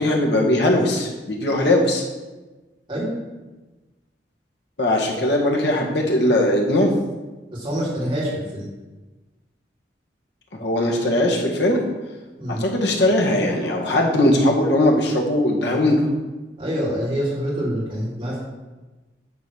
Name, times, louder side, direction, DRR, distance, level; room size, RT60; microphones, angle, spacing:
voice 1, 0.0-2.0 4.8-6.9 10.5-11.8 12.6-16.1, left 1 dB, 75° left, 0 dB, 1.8 m, -19 dB
voice 2, 7.5-8.7 12.4-12.6 16.6-18.4, equal, 30° right, -7 dB, 3.4 m, -26 dB
10.5 x 4.2 x 6.9 m, 1.2 s
head